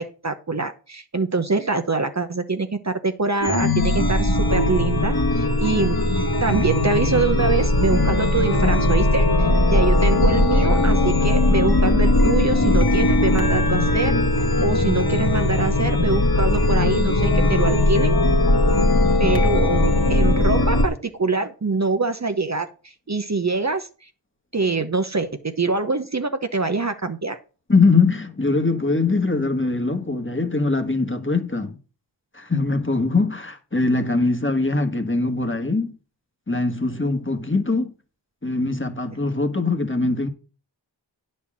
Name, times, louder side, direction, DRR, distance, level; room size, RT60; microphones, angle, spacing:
voice 1, 0.0-6.0 6.4-14.2 14.6-18.2 19.2-24.1 24.5-27.4, right 3 dB, 35° right, 0.9 m, -24 dB
Chime, 3.4-20.8, left 2 dB, 55° left, 1.9 m, -19 dB
voice 2, 27.7-31.8 32.3-35.9 36.5-37.9 38.4-40.3, left 3 dB, 25° left, 1.5 m, -22 dB
9.4 x 4.3 x 7.3 m
wide cardioid pair, 50°, 45 cm